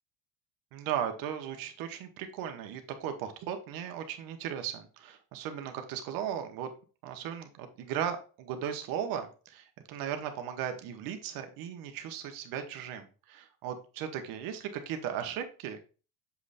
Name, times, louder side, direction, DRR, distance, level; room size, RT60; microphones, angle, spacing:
voice 1, 0.7-6.7 7.0-15.8, right 9 dB, 65° right, 7 dB, 1.2 m, -37 dB
7.1 x 3.2 x 4.1 m, 0.35 s
cardioid pair, 120°, 36 cm